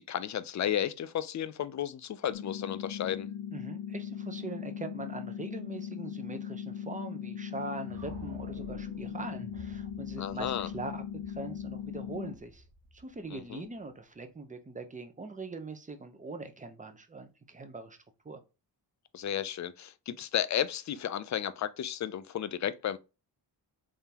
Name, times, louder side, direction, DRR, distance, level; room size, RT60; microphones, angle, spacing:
voice 1, 0.1-3.3 10.2-10.7 13.3-13.7 19.1-23.0, left 10 dB, 45° left, 0.4 m, -33 dB
sound 1, 2.3-12.3, left 8 dB, 85° left, 0.6 m, -39 dB
voice 2, 3.5-12.6 12.9-18.0 18.2-18.4, right 3 dB, 20° right, 0.7 m, -42 dB
sound 2, 7.8-13.9, right 1 dB, 60° right, 1.5 m, -50 dB
3.7 x 3.4 x 2.8 m
cardioid pair, 90°, 43 cm